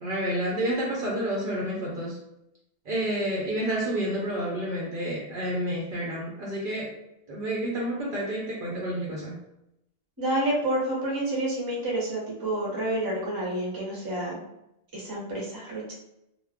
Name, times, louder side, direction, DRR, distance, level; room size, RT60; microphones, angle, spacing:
voice 1, 0.0-2.2 2.9-6.9 7.3-9.4, right 1 dB, 55° right, -4 dB, 0.7 m, -29 dB
voice 2, 10.2-14.4 14.9-15.9, right 1 dB, 20° right, -4 dB, 0.7 m, -29 dB
2.3 x 2.1 x 3.4 m, 0.83 s
omnidirectional pair, 1.1 m